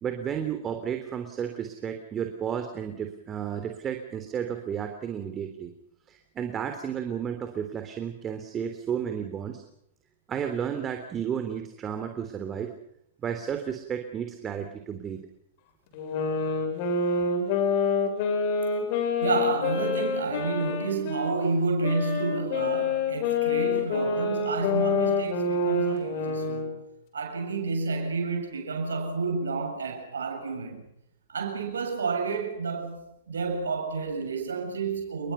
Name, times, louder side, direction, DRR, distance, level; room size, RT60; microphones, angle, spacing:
voice 1, 0.0-5.7 6.1-9.6 10.3-12.7 13.2-15.2, right 8 dB, 25° right, 3.4 m, -32 dB
sound 1, 15.9-21.3 21.8-26.7, left 4 dB, 50° left, 7.9 m, -27 dB
voice 2, 19.2-26.8 27.1-30.8 31.3-35.3, right 4 dB, 80° right, 7.4 m, -30 dB
30.0 x 22.0 x 5.9 m
hypercardioid pair, 110°, 0 cm